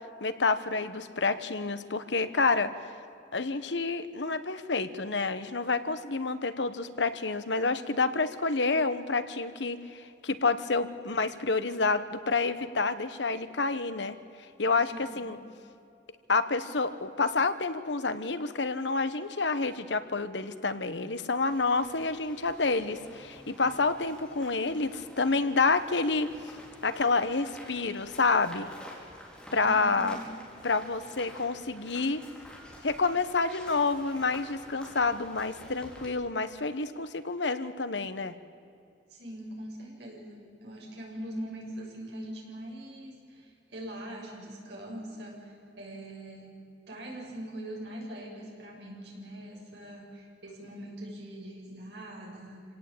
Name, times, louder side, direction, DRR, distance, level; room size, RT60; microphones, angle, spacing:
voice 1, 0.2-2.7 3.3-14.2 14.6-15.4 16.3-26.3 26.8-28.7 29.5-30.2 30.6-32.2 32.8-38.3, left 3 dB, 80° left, 11 dB, 1.3 m, -28 dB
voice 2, 14.9-15.4 29.6-30.3 39.1-46.6 46.9-52.7, right 1 dB, 70° right, -1 dB, 6.7 m, -42 dB
sound 1, 21.4-36.1, equal, 5° left, 4.6 m, -50 dB
27.5 x 18.0 x 8.8 m, 2.5 s
head